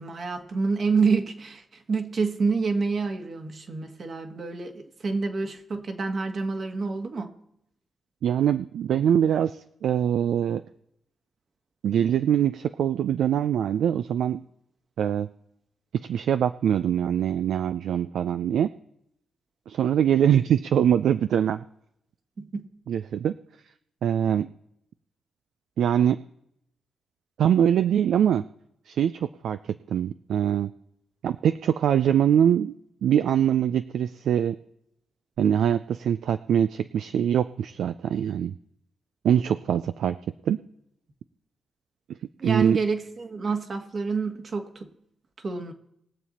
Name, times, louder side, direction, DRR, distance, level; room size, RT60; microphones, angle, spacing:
voice 1, 0.0-1.6 1.9-7.3 22.4-22.7 42.4-44.9 45.4-45.7, right 4 dB, 55° right, 4 dB, 1.7 m, -28 dB
voice 2, 8.2-10.6 11.8-14.4 15.0-15.3 15.9-18.7 19.7-21.6 22.9-23.4 24.0-24.5 25.8-26.2 27.4-28.4 28.9-29.6 29.9-30.7 31.2-32.8 33.0-34.6 35.4-38.5 39.2-40.2 40.5-40.6 42.4-42.8, right 9 dB, 75° right, 11 dB, 0.3 m, -23 dB
21.0 x 7.3 x 4.2 m, 0.76 s
hypercardioid pair, 40°, 0 cm